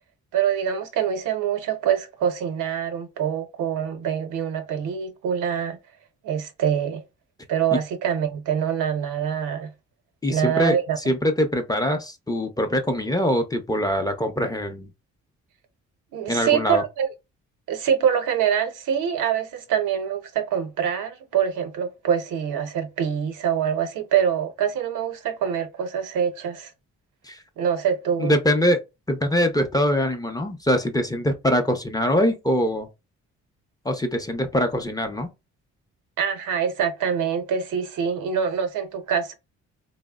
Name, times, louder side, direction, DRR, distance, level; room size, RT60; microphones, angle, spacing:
voice 1, 0.3-5.8 6.2-7.0 7.5-9.7 10.3-11.0 16.1-17.1 17.7-26.7 27.6-28.4 36.2-39.3, right 8 dB, 85° right, 0.7 m, -25 dB
voice 2, 10.2-14.9 16.3-16.8 27.2-27.4 28.2-28.8 29.1-32.9 33.8-35.3, equal, 10° left, 0.5 m, -23 dB
3.3 x 2.0 x 2.2 m
cardioid pair, 90°, 30 cm